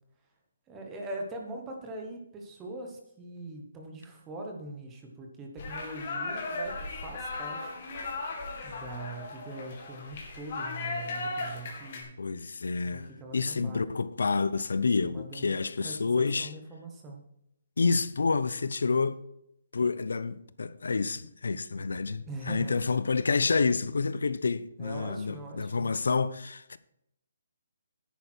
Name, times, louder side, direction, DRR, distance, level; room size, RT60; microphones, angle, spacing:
voice 1, 0.7-7.7 8.6-12.1 12.9-13.9 15.0-15.5 15.8-17.2 22.3-22.8 24.8-25.9, right 2 dB, 10° right, 1.1 m, -42 dB
sound 1, 5.6-12.0, left 3 dB, 30° left, 2.3 m, -37 dB
voice 2, 12.2-16.5 17.8-19.2 19.7-26.8, left 4 dB, 80° left, 0.7 m, -28 dB
10.5 x 9.0 x 4.5 m
hypercardioid pair, 180°, 0 cm